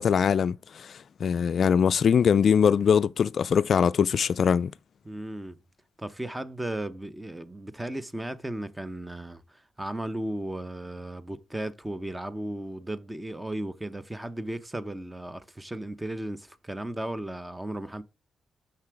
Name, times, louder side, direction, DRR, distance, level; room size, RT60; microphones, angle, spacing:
voice 1, 0.0-4.7, left 7 dB, 60° left, 0.3 m, -22 dB
voice 2, 5.0-5.6 6.0-18.0, right 1 dB, 15° right, 0.9 m, -35 dB
6.8 x 5.7 x 4.7 m
cardioid pair, 65°, 0 cm